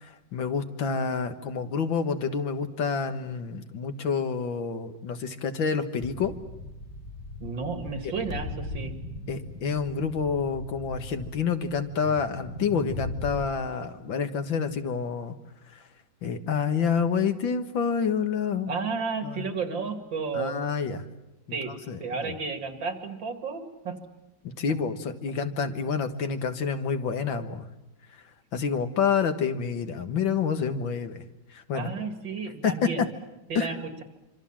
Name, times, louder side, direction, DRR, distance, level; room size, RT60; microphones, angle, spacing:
voice 1, 0.0-6.3 8.0-8.1 9.3-15.4 16.2-18.7 19.2-19.4 20.3-21.0 21.9-22.4 24.6-27.7 28.5-31.2 31.5-31.9 32.6-32.9 33.6-33.7, left 6 dB, 90° left, 8 dB, 2.3 m, -28 dB
sound 1, 6.0-13.5, left 2 dB, 40° left, 2.5 m, -39 dB
voice 2, 7.4-8.9 18.7-20.6 21.5-21.7 22.0-24.0 31.7-33.1 33.5-34.0, right 4 dB, 85° right, 7 dB, 3.3 m, -32 dB
26.0 x 25.5 x 7.5 m, 0.98 s
omnidirectional pair, 2.0 m